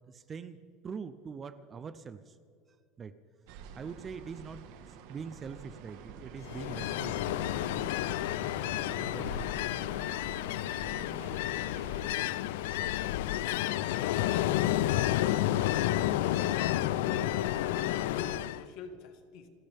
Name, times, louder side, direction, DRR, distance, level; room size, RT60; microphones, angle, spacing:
voice 1, 0.1-0.6 0.8-2.4 3.0-3.1 3.8-7.4 8.9-9.7, right 6 dB, 20° right, 13 dB, 0.5 m, -43 dB
sound 1, 3.5-12.1, right 6 dB, 60° right, 1.5 m, -48 dB
Ocean, 6.4-18.6, left 13 dB, 85° left, 0.5 m, -30 dB
voice 2, 13.9-14.4 16.2-19.5, left 5 dB, 55° left, 7 dB, 1.6 m, -45 dB
30.0 x 13.5 x 3.5 m, 2.2 s
cardioid pair, 165°, 0 cm